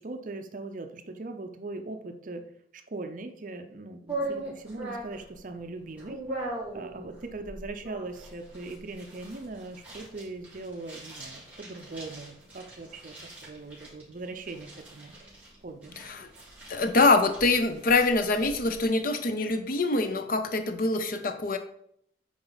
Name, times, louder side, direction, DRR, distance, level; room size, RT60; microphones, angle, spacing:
voice 1, 0.0-2.4 2.7-6.2 6.7-15.1 15.6-15.9, right 2 dB, 45° right, 6 dB, 0.6 m, -40 dB
sound 1, 4.1-18.8, right 2 dB, 10° right, 3.3 m, -41 dB
voice 2, 16.7-21.6, left 3 dB, 50° left, 8 dB, 0.6 m, -24 dB
9.5 x 4.4 x 4.0 m, 0.69 s
head